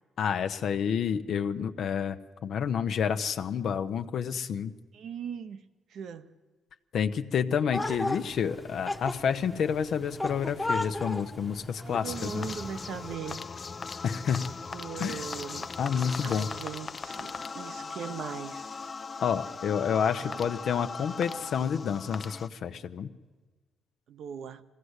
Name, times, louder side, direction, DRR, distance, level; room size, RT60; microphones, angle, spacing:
voice 1, 0.2-2.2 2.4-4.7 6.9-12.5 14.0-14.4 15.0-15.2 15.8-16.5 19.2-23.1, left 7 dB, 65° left, 8 dB, 0.9 m, -29 dB
voice 2, 4.9-5.6 5.9-6.3 11.8-13.4 14.7-15.7 16.2-18.9 20.2-20.4 24.1-24.6, right 7 dB, 70° right, 11 dB, 1.0 m, -39 dB
sound 1, 7.7-13.2, left 2 dB, 5° left, 1.1 m, -35 dB
sound 2, 12.0-22.5, left 4 dB, 35° left, 0.6 m, -39 dB
21.5 x 16.0 x 8.1 m, 1.3 s
cardioid pair, 90°, 0 cm